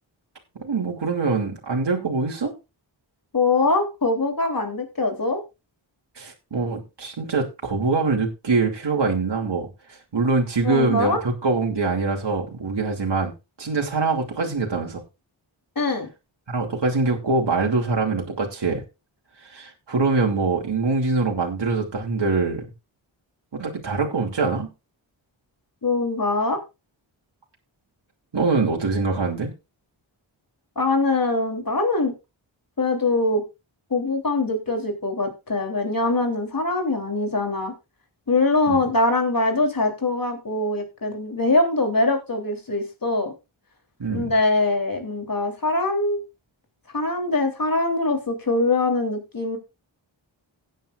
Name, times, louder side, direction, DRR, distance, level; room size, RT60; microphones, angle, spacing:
voice 1, 0.6-2.5 6.2-13.3 13.6-15.0 16.5-18.8 19.4-22.7 23.5-24.7 28.3-29.5 38.7-38.8 44.0-44.3, right 3 dB, 60° right, -1 dB, 2.8 m, -24 dB
voice 2, 3.3-5.4 10.6-11.2 15.7-16.1 25.8-26.6 30.7-32.1 32.8-33.4 33.9-37.7 38.3-43.3 44.1-46.2 46.9-49.6, left 2 dB, 45° left, 3 dB, 3.3 m, -23 dB
16.5 x 9.3 x 2.5 m, 0.26 s
wide cardioid pair, 85°, 47 cm